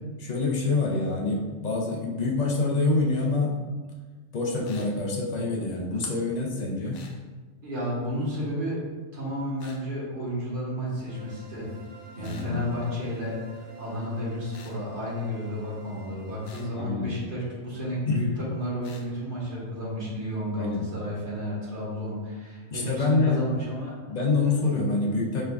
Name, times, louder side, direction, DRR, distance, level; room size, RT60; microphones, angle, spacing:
voice 1, 0.2-3.6 4.3-7.0 12.2-12.6 16.7-17.1 18.0-18.3 20.5-20.8 22.7-23.4 24.1-25.4, left 3 dB, 50° left, -2 dB, 0.5 m, -26 dB
sound 1, 4.6-4.9 6.9-7.2 9.6-9.8 12.2-12.5 14.5-14.8 16.4-16.7 18.8-19.1, left 4 dB, 80° left, 1.0 m, -49 dB
voice 2, 7.6-8.8 9.1-11.7 12.1-23.9, equal, 40° right, -7 dB, 1.3 m, -32 dB
sound 2, 11.1-16.8, right 3 dB, 80° right, 1.0 m, -48 dB
5.0 x 3.3 x 2.3 m, 1.4 s
omnidirectional pair, 1.4 m